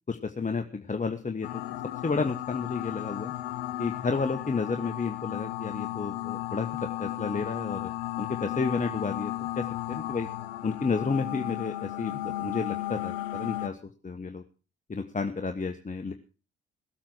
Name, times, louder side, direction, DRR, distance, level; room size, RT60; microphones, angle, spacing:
voice 1, 0.1-1.6 2.0-3.3 3.8-7.9 8.2-10.3 10.6-14.4 14.9-16.1, left 4 dB, 25° left, 5 dB, 1.5 m, -31 dB
sound 1, 1.4-13.7, left 15 dB, 80° left, 0.7 m, -34 dB
18.0 x 8.4 x 6.2 m, 0.36 s
hypercardioid pair, 45°, 30 cm